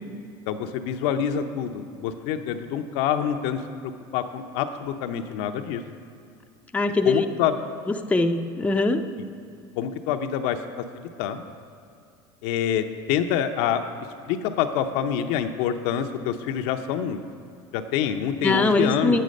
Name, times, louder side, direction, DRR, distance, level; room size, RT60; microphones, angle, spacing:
voice 1, 0.5-5.8 7.0-7.5 9.8-10.8 11.2-11.4 12.4-13.8 14.3-17.2 17.7-19.2, left 9 dB, 70° left, 7 dB, 0.6 m, -26 dB
voice 2, 6.7-7.3 7.9-9.0 18.4-19.2, left 2 dB, 10° left, 5 dB, 0.6 m, -22 dB
9.2 x 7.7 x 5.2 m, 2.5 s
supercardioid pair, 100°, 12 cm